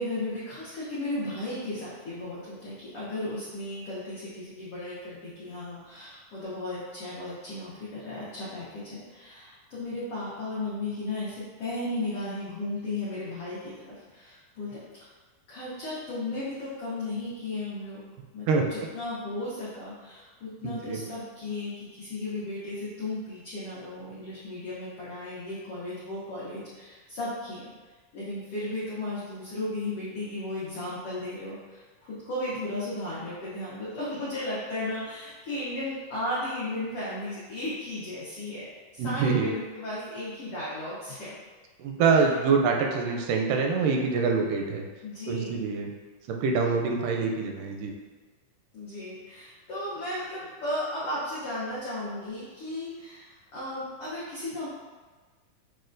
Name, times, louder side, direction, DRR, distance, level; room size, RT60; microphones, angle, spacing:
voice 1, 0.0-13.7 14.1-14.8 15.5-18.0 18.3-27.6 28.1-41.3 42.1-42.2 45.0-45.6 48.7-54.7, left 1 dB, 85° left, -9 dB, 1.2 m, -35 dB
voice 2, 20.6-21.1 39.0-39.5 41.8-44.9 45.3-45.9 46.3-47.9, right 4 dB, 85° right, 2 dB, 2.1 m, -25 dB
6.4 x 2.2 x 2.5 m, 1.4 s
omnidirectional pair, 3.7 m